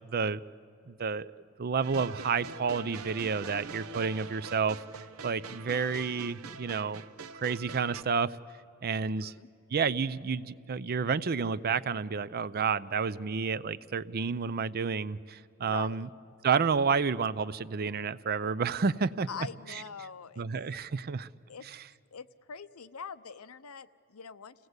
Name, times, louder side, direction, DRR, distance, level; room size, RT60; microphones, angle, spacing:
voice 1, 0.1-0.4 0.9-1.3 1.6-4.8 5.2-7.0 7.4-8.4 8.8-9.3 9.7-16.1 16.4-19.3 19.7-19.8 20.4-21.3 21.6-21.9, right 5 dB, 45° right, 16 dB, 0.5 m, -30 dB
sound 1, 1.8-8.0, right 4 dB, 75° right, 0.8 m, -44 dB
voice 2, 9.0-9.5 15.6-16.1 19.3-20.5 21.5-21.6 22.1-24.5, left 6 dB, 80° left, 13 dB, 0.7 m, -43 dB
28.0 x 17.5 x 8.0 m, 2.5 s
head